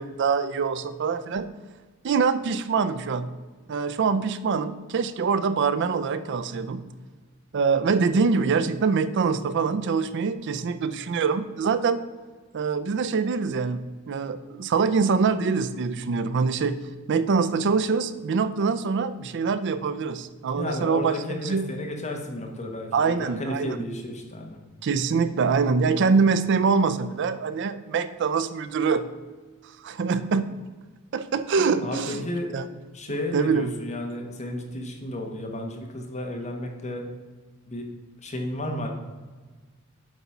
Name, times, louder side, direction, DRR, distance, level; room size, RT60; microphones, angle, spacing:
voice 1, 0.0-1.5 2.0-3.3 3.7-6.8 7.5-12.0 12.5-13.8 14.1-21.7 22.9-23.8 24.8-29.1 29.8-30.5 31.1-32.3 32.5-32.7 33.3-33.7, right 5 dB, 55° right, 12 dB, 0.4 m, -24 dB
voice 2, 20.5-24.6 31.8-32.5 32.9-37.0 37.7-37.9 38.2-38.9, left 1 dB, 35° left, 2 dB, 1.2 m, -33 dB
7.9 x 4.2 x 5.8 m, 1.4 s
head